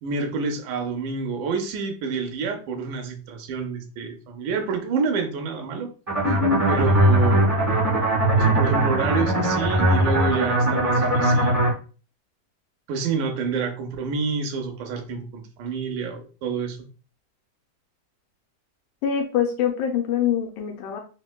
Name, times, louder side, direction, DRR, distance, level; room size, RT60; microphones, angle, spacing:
voice 1, 0.0-5.9 6.7-7.4 8.4-11.6 12.9-16.8, right 5 dB, 85° right, 5 dB, 2.1 m, -28 dB
sound 1, 6.1-11.7, right 1 dB, 50° right, 0.4 m, -20 dB
voice 2, 6.2-6.6 19.0-21.0, left 8 dB, 85° left, 2 dB, 2.0 m, -24 dB
5.1 x 2.1 x 2.2 m, 0.36 s
omnidirectional pair, 3.5 m